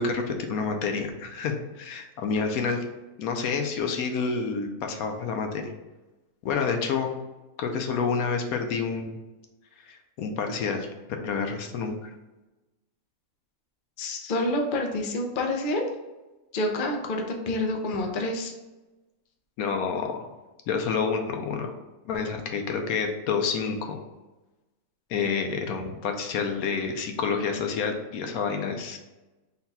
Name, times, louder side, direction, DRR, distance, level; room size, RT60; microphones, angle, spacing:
voice 1, 0.0-2.8 3.2-5.7 6.4-7.1 7.6-9.2 9.9-10.9 11.2-12.1 19.6-20.3 20.7-21.7 22.0-24.0 25.1-29.0, left 5 dB, 85° left, 4 dB, 1.1 m, -28 dB
voice 2, 14.0-15.9 16.5-18.5, left 1 dB, 50° left, 2 dB, 0.6 m, -28 dB
4.0 x 2.3 x 4.0 m, 1.1 s
omnidirectional pair, 1.5 m